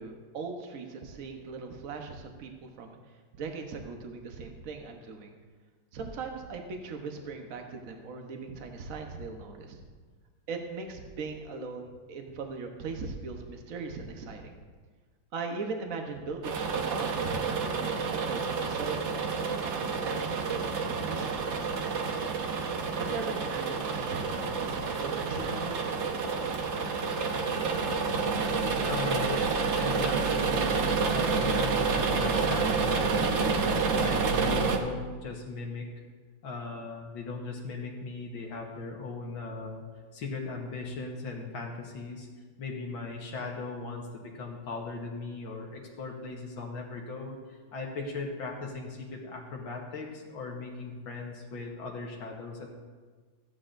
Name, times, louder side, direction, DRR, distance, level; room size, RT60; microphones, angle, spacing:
voice 1, 0.0-3.0 3.3-5.3 5.9-9.8 10.5-14.6 15.3-19.2 19.7-21.4 22.9-25.8, right 4 dB, 50° right, 3 dB, 1.2 m, -39 dB
sound 1, 16.4-34.8, right 4 dB, 85° right, 0.6 m, -29 dB
voice 2, 28.8-35.9 36.4-39.8 40.1-42.3 42.6-47.4 47.7-52.7, left 3 dB, 70° left, 0 dB, 1.9 m, -38 dB
14.5 x 9.9 x 2.6 m, 1.5 s
omnidirectional pair, 2.3 m